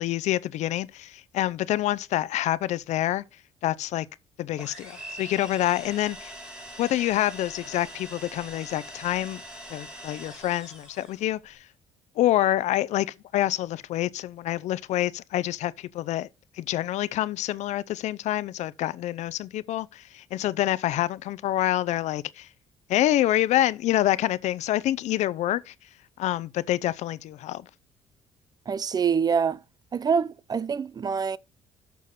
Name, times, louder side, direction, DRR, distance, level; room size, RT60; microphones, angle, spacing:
voice 1, 0.0-3.2 3.6-4.1 4.4-6.3 6.8-9.4 9.7-11.7 12.2-16.3 16.6-22.5 22.9-25.7 26.2-27.7, left 14 dB, 70° left, 0.6 m, -27 dB
sound 1, 4.6-11.3, equal, 10° right, 5.1 m, -43 dB
voice 2, 28.7-29.6 29.9-31.4, right 6 dB, 35° right, 0.5 m, -25 dB
6.8 x 6.4 x 4.2 m
cardioid pair, 90°, 12 cm